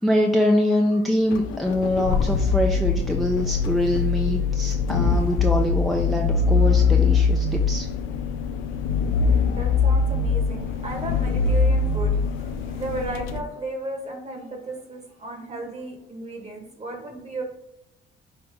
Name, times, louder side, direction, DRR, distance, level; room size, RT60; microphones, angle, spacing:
voice 1, 0.0-7.9, left 1 dB, ahead, 1 dB, 0.5 m, -24 dB
sound 1, 1.3-13.4, left 4 dB, 85° left, 0.4 m, -22 dB
voice 2, 9.0-17.4, right 2 dB, 35° right, 2 dB, 1.5 m, -35 dB
5.5 x 2.8 x 3.4 m, 0.82 s
cardioid pair, 90°, 20 cm